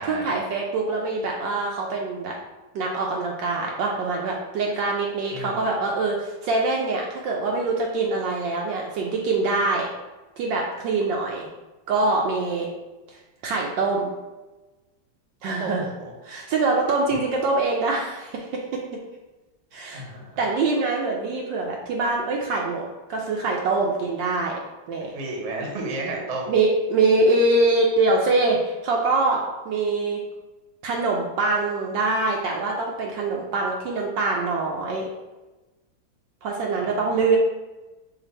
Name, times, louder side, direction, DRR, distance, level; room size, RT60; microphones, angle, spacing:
voice 1, 0.0-2.3 2.7-9.9 10.4-11.5 11.9-12.7 13.1-13.2 13.4-14.1 15.4-15.9 16.2-18.8 19.7-20.0 20.4-24.6 24.9-25.1 26.5-30.2 30.8-35.1 36.4-37.4, right 3 dB, 75° right, -1 dB, 1.2 m, -24 dB
voice 2, 5.3-5.6 15.6-16.1 19.9-20.5 25.0-26.5 36.8-37.2, right 2 dB, 50° right, 0 dB, 1.0 m, -33 dB
5.1 x 2.5 x 4.1 m, 1.1 s
omnidirectional pair, 2.2 m